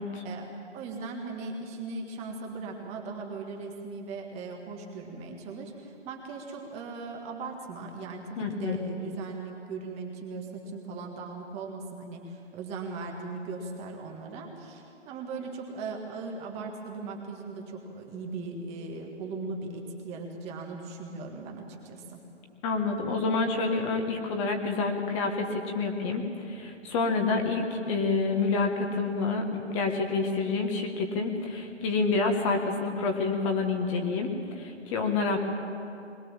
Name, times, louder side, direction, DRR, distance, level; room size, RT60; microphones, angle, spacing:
voice 1, 0.2-22.2, right 3 dB, 15° right, 1 dB, 1.6 m, -38 dB
voice 2, 8.4-8.8 22.6-35.4, left 4 dB, 25° left, 3 dB, 1.7 m, -28 dB
21.5 x 18.5 x 7.4 m, 2.7 s
hypercardioid pair, 145°, 36 cm